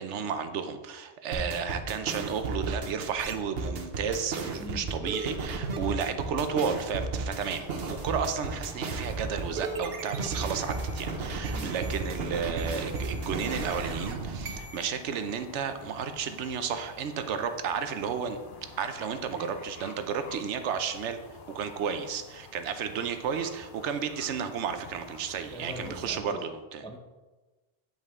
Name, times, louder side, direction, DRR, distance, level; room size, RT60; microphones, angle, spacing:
voice 1, 0.0-18.4 18.8-21.2 21.5-26.8, right 6 dB, 90° right, 8 dB, 1.0 m, -32 dB
sound 1, 1.3-14.8, right 3 dB, 60° right, 1.0 m, -34 dB
voice 2, 4.6-4.9 11.4-11.7 25.5-26.4 26.8-27.0, left 1 dB, 10° left, 3 dB, 0.3 m, -42 dB
sound 2, 7.3-26.2, left 4 dB, 55° left, 0.8 m, -50 dB
9.0 x 5.4 x 3.6 m, 1.2 s
omnidirectional pair, 1.2 m